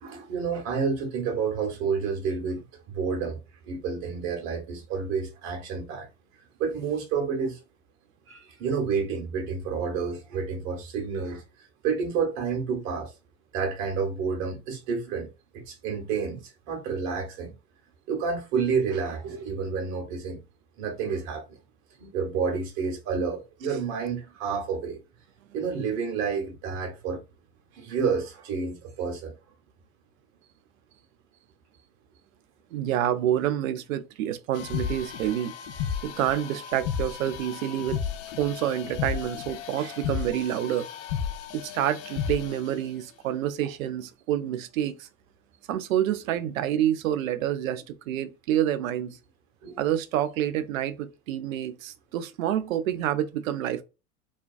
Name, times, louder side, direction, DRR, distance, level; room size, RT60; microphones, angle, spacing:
voice 1, 0.0-3.4 3.7-6.1 6.6-7.6 8.3-11.4 11.8-13.1 13.5-17.5 18.1-20.4 20.8-21.6 22.0-25.0 25.5-27.2 27.7-29.3 39.8-40.0 47.6-47.8 49.6-49.9, right 5 dB, 40° right, 0.9 m, -29 dB
voice 2, 32.7-35.5 36.0-38.0 38.4-40.9 41.5-45.1 45.7-49.2 49.8-53.8, right 11 dB, 65° right, 0.5 m, -28 dB
sound 1, 34.5-42.8, left 8 dB, 55° left, 0.5 m, -33 dB
2.5 x 2.2 x 2.4 m
figure-of-eight pair, 85°, 43 cm